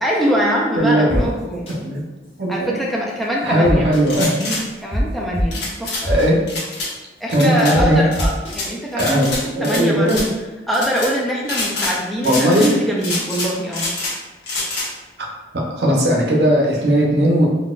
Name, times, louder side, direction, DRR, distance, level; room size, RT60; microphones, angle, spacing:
voice 1, 0.0-1.7 2.5-3.9 4.8-5.9 7.2-10.3 10.7-13.9, equal, ahead, -4 dB, 0.4 m, -23 dB
voice 2, 0.8-1.2 1.8-2.0 2.4-2.7 3.4-4.5 6.0-6.4 7.3-8.0 9.0-9.3 9.6-10.2 12.2-12.7 15.7-17.5, right 1 dB, 70° right, -2 dB, 0.7 m, -17 dB
sound 1, 1.1-1.2 1.7-1.8 3.6-4.0 4.9-5.0 5.3-5.4 6.0-6.3 7.7-7.8 8.2-8.5, equal, 35° left, 0.7 m, -22 dB
sound 2, 4.0-4.6 5.5-6.0 6.5-6.9 7.3-7.7 8.1-8.7 9.0-9.8 10.1-10.3 10.7-11.1 11.4-12.0 12.2-12.7 13.0-14.1 14.4-14.9, left 2 dB, 85° left, 1.0 m, -26 dB
4.0 x 2.2 x 2.3 m, 1.1 s
head